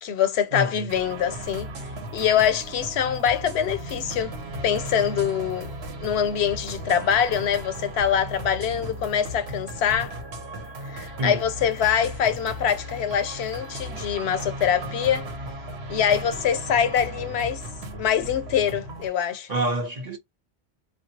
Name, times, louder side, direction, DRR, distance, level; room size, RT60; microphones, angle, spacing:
voice 1, 0.0-1.7 2.1-4.3 4.6-5.7 6.0-10.1 10.9-15.3 15.9-17.6 17.9-19.5, left 8 dB, 85° left, 0.9 m, -24 dB
voice 2, 0.5-0.9 11.2-11.4 19.5-20.2, right 1 dB, 45° right, 0.7 m, -27 dB
sound 1, 0.9-19.1, right 1 dB, 80° right, 1.1 m, -36 dB
3.3 x 2.3 x 2.8 m
omnidirectional pair, 1.1 m